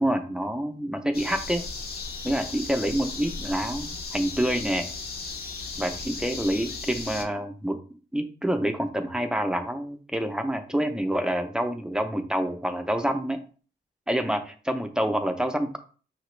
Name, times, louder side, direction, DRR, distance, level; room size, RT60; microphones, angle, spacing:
voice 1, 0.0-1.7 2.2-4.9 5.8-7.8 8.1-13.4 14.1-15.8, right 1 dB, 5° right, 6 dB, 0.4 m, -27 dB
sound 1, 1.1-7.2, left 4 dB, 60° left, 0.7 m, -36 dB
5.8 x 2.9 x 3.1 m, 0.38 s
wide cardioid pair, 165°, 18 cm